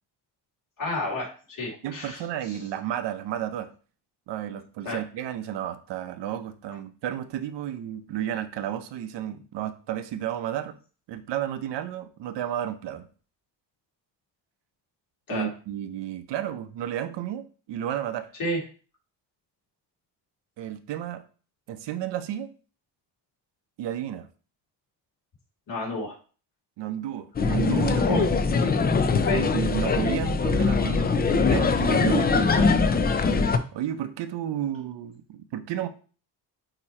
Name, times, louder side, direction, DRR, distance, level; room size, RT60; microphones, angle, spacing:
voice 1, 0.8-2.2 2.5-2.6 4.8-5.0 15.3-15.5 18.4-18.6 25.7-26.2 28.1-28.2 29.3-29.4, left 2 dB, 45° left, -2 dB, 2.6 m, -30 dB
voice 2, 1.8-3.7 4.3-10.8 11.1-13.1 15.3-18.3 20.6-21.2 21.7-22.5 23.8-24.3 26.8-28.3 29.3-32.7 33.7-35.9, right 11 dB, 70° right, 10 dB, 0.8 m, -32 dB
sound 1, 27.4-33.6, left 4 dB, 20° left, 0.4 m, -22 dB
8.8 x 3.0 x 4.2 m, 0.39 s
cardioid pair, 130°, 44 cm